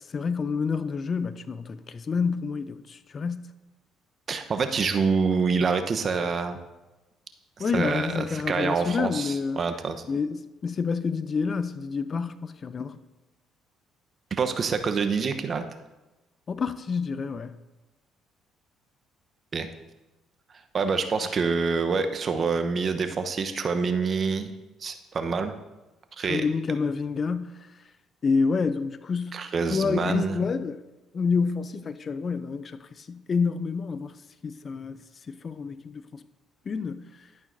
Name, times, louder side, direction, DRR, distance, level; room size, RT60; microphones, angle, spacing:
voice 1, 0.1-3.5 7.6-9.6 10.1-13.0 16.5-17.5 26.2-27.7 28.2-29.4 29.7-30.8 31.1-34.2 34.4-36.2 36.7-37.3, left 5 dB, 45° left, 0.6 m, -28 dB
voice 2, 4.3-6.6 7.6-10.0 14.3-15.6 19.5-19.7 20.7-24.5 24.8-25.5 26.2-26.4 29.3-30.4, right 5 dB, 45° right, 1.0 m, -26 dB
12.0 x 11.0 x 2.7 m
hypercardioid pair, 55°, 0 cm